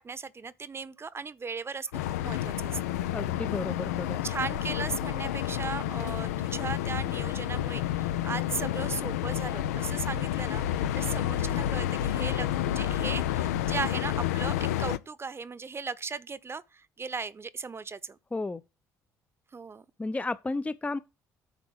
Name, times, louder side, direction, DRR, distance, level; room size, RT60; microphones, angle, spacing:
voice 1, 0.0-1.9 2.2-2.8 4.2-18.2 19.5-19.8, right 4 dB, 30° right, 1.0 m, -37 dB
sound 1, 1.9-15.0, left 12 dB, 80° left, 0.6 m, -30 dB
voice 2, 3.1-4.2 18.3-18.6 20.0-21.0, left 3 dB, 15° left, 0.7 m, -32 dB
9.1 x 4.5 x 6.4 m
hypercardioid pair, 50°, 8 cm